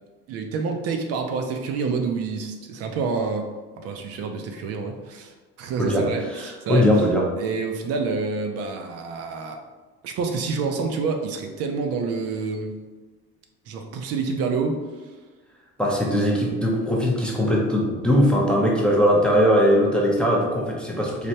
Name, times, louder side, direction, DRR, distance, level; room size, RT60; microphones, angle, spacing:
voice 1, 0.3-3.5 3.8-6.9 7.4-9.6 10.0-12.7 13.7-15.1, right 4 dB, 55° right, 4 dB, 0.4 m, -28 dB
voice 2, 6.3-7.2 15.8-21.3, equal, 5° left, -3 dB, 0.5 m, -20 dB
3.2 x 2.1 x 2.7 m, 1.3 s
cardioid pair, 110°, 29 cm